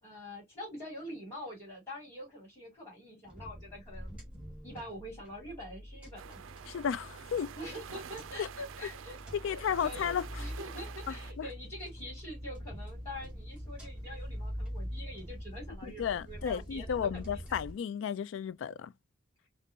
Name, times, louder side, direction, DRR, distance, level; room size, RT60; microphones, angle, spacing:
voice 1, 0.0-4.2 4.6-6.4 7.6-9.2 9.5-17.1, equal, 15° left, 2.6 m, -45 dB
sound 1, 3.3-17.7, equal, 5° right, 1.8 m, -44 dB
sound 2, 6.2-11.3, right 8 dB, 80° right, 0.4 m, -48 dB
voice 2, 6.7-7.5 8.4-8.5 9.3-10.3 11.1-11.5 15.8-18.9, left 8 dB, 70° left, 0.3 m, -33 dB
5.1 x 2.1 x 2.6 m
head